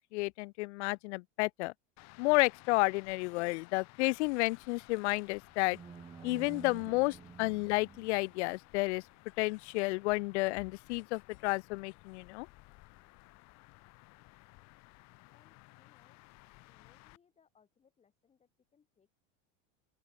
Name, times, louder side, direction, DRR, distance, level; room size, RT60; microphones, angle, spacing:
voice 1, 0.1-1.7 2.2-5.8 6.2-9.0 9.4-12.5, left 24 dB, 60° left, 0.5 m, -31 dB
sound 1, 2.0-17.2, left 24 dB, 40° left, 5.1 m, -58 dB
sound 2, 5.3-8.5, right 6 dB, 10° right, 1.7 m, -50 dB
voice 2, 15.3-16.2 16.6-19.1, left 6 dB, 15° left, 7.6 m, -70 dB
open air
supercardioid pair, 165°, 40 cm